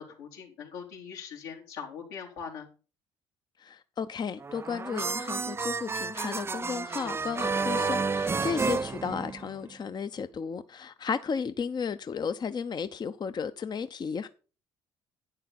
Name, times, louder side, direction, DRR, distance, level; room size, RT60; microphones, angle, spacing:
voice 1, 0.0-2.7 7.7-7.9, left 6 dB, 85° left, 3.5 m, -41 dB
voice 2, 3.6-14.3, left 6 dB, 35° left, 0.7 m, -34 dB
sound 1, 4.4-9.7, right 4 dB, 20° right, 0.4 m, -31 dB
11.5 x 9.3 x 4.2 m
hypercardioid pair, 65°, 12 cm